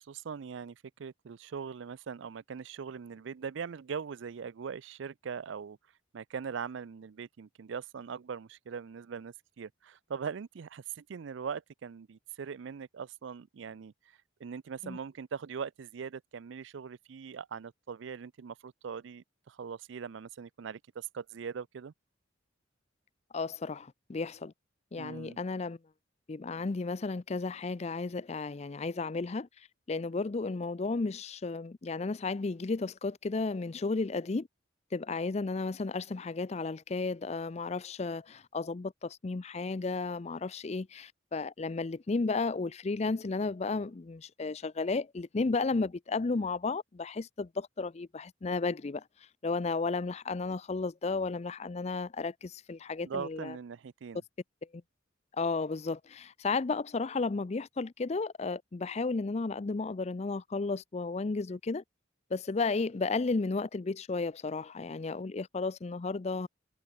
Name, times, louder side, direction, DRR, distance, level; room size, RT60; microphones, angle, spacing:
voice 1, 0.0-5.8 6.1-13.9 14.4-21.9 25.0-25.4 53.0-54.2, right 6 dB, 75° right, 0.4 m, -41 dB
voice 2, 23.3-24.5 24.9-25.8 26.3-29.5 29.9-34.5 34.9-49.0 49.4-53.6 55.4-61.8 62.3-66.5, left 3 dB, 35° left, 0.5 m, -33 dB
head